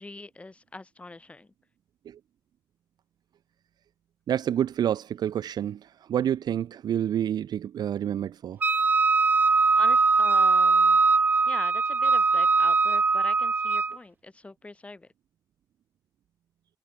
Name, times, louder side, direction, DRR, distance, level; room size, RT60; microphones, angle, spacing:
voice 1, 0.0-1.5 9.8-11.0 11.5-15.1, left 2 dB, 15° left, 2.5 m, -42 dB
voice 2, 4.3-8.6, right 10 dB, 70° right, 0.5 m, -28 dB
Wind instrument woodwind instrument, 8.6-14.0, right 4 dB, 25° right, 0.6 m, -21 dB
wide cardioid pair, 165°, 7 cm